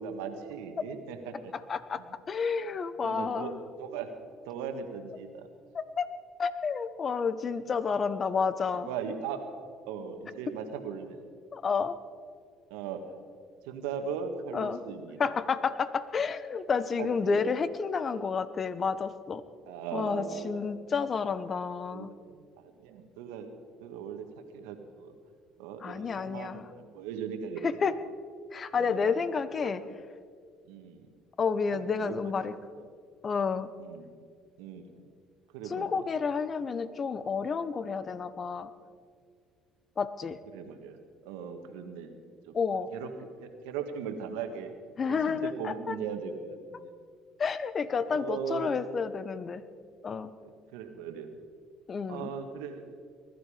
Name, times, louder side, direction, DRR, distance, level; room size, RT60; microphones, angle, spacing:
voice 1, 0.0-1.5 3.0-3.5 3.8-4.1 4.4-5.5 8.7-9.4 9.9-11.2 12.7-13.0 13.6-15.3 17.0-17.4 19.7-20.7 21.9-23.5 23.8-24.2 24.5-25.1 25.6-27.7 28.8-29.1 29.6-29.9 30.7-31.1 31.7-32.5 33.8-34.1 34.6-34.8 35.5-35.9 40.5-41.0 41.2-42.1 42.5-42.6 42.9-43.1 43.4-44.7 45.1-46.9 48.1-48.8 50.4-51.3 52.1-53.0, right 7 dB, 90° right, 6 dB, 1.6 m, -38 dB
voice 2, 1.5-3.6 5.7-6.1 6.4-8.9 11.5-12.0 14.5-14.8 15.2-19.4 19.9-22.1 25.8-26.7 27.6-27.9 28.5-29.8 31.4-32.5 33.2-33.7 35.6-38.7 40.0-40.4 42.5-42.9 45.0-46.0 47.4-49.6 50.0-50.3 51.9-52.3, left 5 dB, 40° left, 14 dB, 0.9 m, -30 dB
20.5 x 12.5 x 5.0 m, 2.1 s
supercardioid pair, 80°, 0 cm